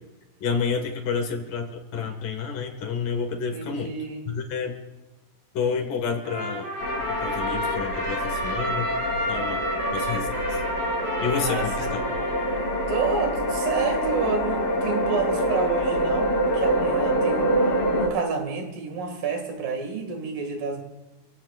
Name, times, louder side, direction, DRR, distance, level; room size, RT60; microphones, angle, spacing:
voice 1, 0.4-3.9 4.3-4.8 5.5-6.7 7.1-8.9 9.3-9.6 9.9-10.6 11.2-12.0, left 6 dB, 70° left, 4 dB, 3.3 m, -29 dB
voice 2, 3.5-4.3 11.4-11.9 12.9-20.8, right 5 dB, 75° right, 3 dB, 3.8 m, -29 dB
Trumpet, 6.2-12.8, right 1 dB, 50° right, 6.1 m, -31 dB
sound 1, 6.8-18.1, equal, 85° left, 4.6 m, -26 dB
28.0 x 16.0 x 2.5 m, 1.1 s
omnidirectional pair, 4.0 m